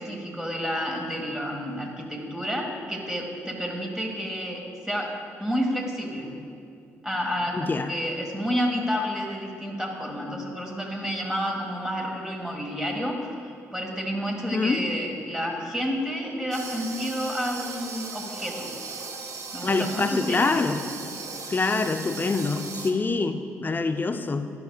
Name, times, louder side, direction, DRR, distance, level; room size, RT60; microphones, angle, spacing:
voice 1, 0.0-5.1 5.4-6.3 7.0-18.7 19.5-20.6, equal, 5° right, 0 dB, 1.7 m, -30 dB
voice 2, 7.5-7.9 14.5-14.8 19.6-20.8 21.5-24.5, left 3 dB, 25° left, 9 dB, 0.6 m, -25 dB
sound 1, 16.5-22.9, right 4 dB, 50° right, 1.0 m, -37 dB
12.0 x 10.5 x 2.4 m, 2.5 s
figure-of-eight pair, 40°, 7 cm